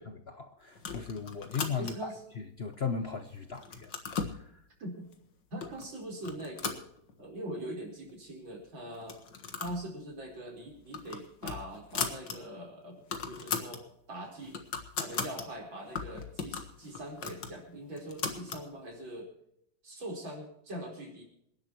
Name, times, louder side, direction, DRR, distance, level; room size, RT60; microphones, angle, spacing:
voice 1, 0.1-4.6, left 5 dB, 50° left, 0.8 m, -38 dB
sound 1, 0.8-2.2 2.7-3.2 3.5-4.4 5.1-5.2 5.6-5.9 6.2-7.4 7.8-7.9 8.1-8.2 8.9-9.8 10.1-10.3 10.7-12.4 12.7-12.8 13.0-13.8 14.2-15.5 15.9-18.7, left 6 dB, 70° left, 2.2 m, -37 dB
voice 2, 1.8-2.2 4.8-5.0 5.5-6.8 7.2-9.2 9.6-13.8 14.1-14.6 15.0-19.3 19.8-21.2, right 1 dB, 85° right, 5.2 m, -42 dB
27.0 x 11.0 x 3.0 m
omnidirectional pair, 2.0 m